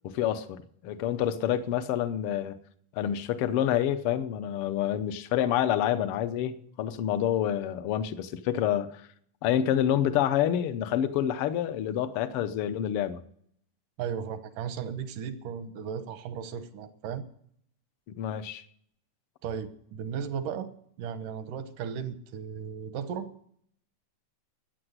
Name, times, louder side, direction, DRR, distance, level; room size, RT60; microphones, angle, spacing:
voice 1, 0.0-2.6 2.9-9.0 9.4-13.2 18.2-18.6, left 10 dB, 70° left, 12 dB, 1.3 m, -28 dB
voice 2, 14.0-17.2 19.4-20.7 21.0-23.3, right 7 dB, 80° right, 10 dB, 2.7 m, -35 dB
14.0 x 9.8 x 8.1 m, 0.66 s
omnidirectional pair, 3.7 m